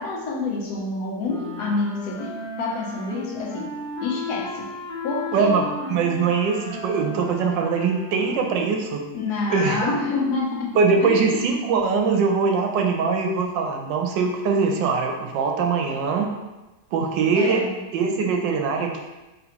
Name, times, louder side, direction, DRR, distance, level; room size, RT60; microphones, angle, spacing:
voice 1, 0.0-3.7 4.0-4.8 5.0-5.5 9.1-11.4 17.3-17.7, left 3 dB, 65° left, -2 dB, 1.3 m, -28 dB
sound 1, 1.2-8.6, left 2 dB, 35° left, 1.1 m, -35 dB
voice 2, 5.3-9.0 9.5-9.9 10.7-16.3 16.9-17.6 17.9-19.0, right 5 dB, 80° right, 2 dB, 1.2 m, -22 dB
4.0 x 3.3 x 2.9 m, 1.1 s
omnidirectional pair, 2.0 m